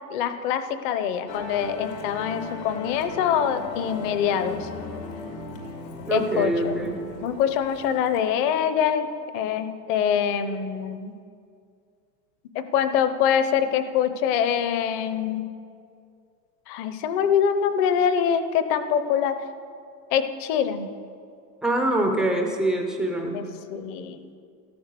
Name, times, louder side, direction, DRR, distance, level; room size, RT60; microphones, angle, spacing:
voice 1, 0.1-4.7 6.1-6.7 7.2-9.1 9.3-11.1 12.5-15.5 16.7-19.4 20.1-20.9 23.3-23.4 23.7-24.3, left 8 dB, 30° left, 11 dB, 0.7 m, -24 dB
Musical instrument, 1.3-8.2, left 3 dB, 85° left, 2.6 m, -37 dB
voice 2, 6.1-7.0 21.6-23.4, right 1 dB, ahead, 2 dB, 0.4 m, -24 dB
13.5 x 12.5 x 6.8 m, 2.3 s
supercardioid pair, 160°, 50 cm